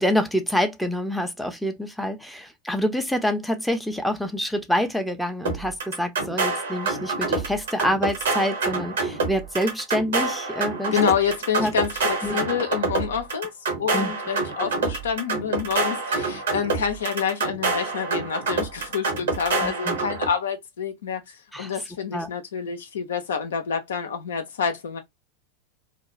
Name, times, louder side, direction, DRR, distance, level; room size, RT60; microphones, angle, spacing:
voice 1, 0.0-11.0 11.6-11.7 12.2-12.5 13.9-14.1 19.6-20.0 21.5-21.7 22.1-22.3, equal, ahead, 0.6 m, -26 dB
sound 1, 5.5-20.3, right 3 dB, 70° right, 0.9 m, -27 dB
voice 2, 10.9-13.5 13.8-25.0, left 7 dB, 70° left, 0.5 m, -28 dB
2.4 x 2.3 x 2.9 m
figure-of-eight pair, 85°, 0 cm